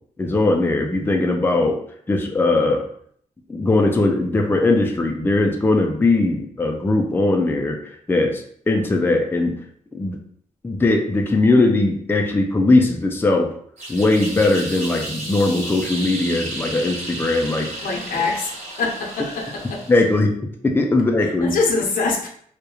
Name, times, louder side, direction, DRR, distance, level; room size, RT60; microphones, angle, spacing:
voice 1, 0.2-1.8 2.1-2.9 3.5-9.5 9.9-10.2 10.6-13.5 13.9-17.7 18.1-18.2 19.9-20.3 20.6-21.6, left 2 dB, 15° left, 3 dB, 0.4 m, -19 dB
sound 1, 13.8-20.1, right 1 dB, 55° right, 1.2 m, -33 dB
voice 2, 17.8-18.5 18.8-19.8 21.2-22.3, left 4 dB, 75° left, 0 dB, 0.6 m, -24 dB
2.2 x 2.1 x 2.9 m, 0.62 s
cardioid pair, 75°, 14 cm